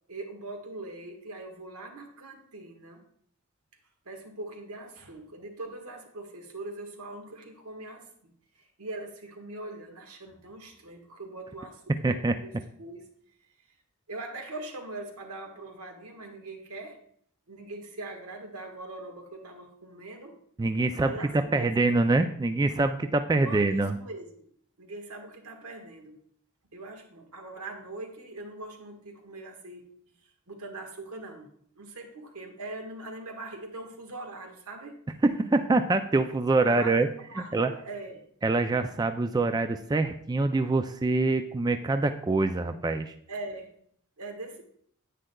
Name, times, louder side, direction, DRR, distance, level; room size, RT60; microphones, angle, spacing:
voice 1, 0.1-3.0 4.0-12.5 12.8-13.1 14.1-17.0 17.5-20.4 20.9-21.7 23.4-24.3 24.8-26.2 26.7-29.9 30.5-31.5 31.7-35.0 36.6-38.2 43.3-43.7 44.2-44.6, right 2 dB, 90° right, 3 dB, 1.5 m, -41 dB
voice 2, 12.0-12.4 20.6-23.9 35.2-37.1 37.5-37.7 38.4-43.1, right 3 dB, 20° right, 8 dB, 0.3 m, -25 dB
10.0 x 8.8 x 2.3 m, 0.65 s
head